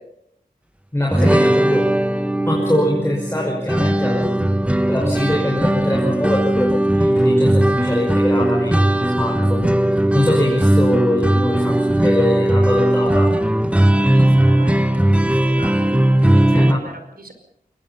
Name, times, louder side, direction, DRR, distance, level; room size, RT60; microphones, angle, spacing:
voice 1, 0.9-1.9 2.5-4.5 4.9-9.7 10.1-13.3 16.5-16.8, left 1 dB, 15° left, -1 dB, 5.4 m, -23 dB
sound 1, 1.1-16.7, right 1 dB, 5° right, 1.4 m, -17 dB
voice 2, 14.0-15.8 16.2-17.3, right 2 dB, 65° right, 7 dB, 5.0 m, -39 dB
23.0 x 20.5 x 5.6 m, 0.73 s
wide cardioid pair, 55°, 17 cm